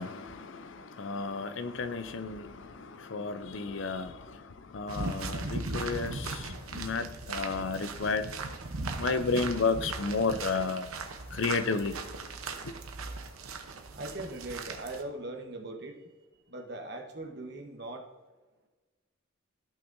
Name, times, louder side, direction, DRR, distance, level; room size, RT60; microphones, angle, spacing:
voice 1, 0.0-8.3 9.0-10.9 11.3-12.0 12.6-12.7, left 4 dB, 65° left, 0.5 m, -32 dB
sound 1, 4.9-15.0, right 3 dB, 85° right, 0.9 m, -38 dB
voice 2, 13.9-16.1 16.5-18.1, right 2 dB, 50° right, 1.1 m, -40 dB
14.5 x 5.8 x 2.7 m
head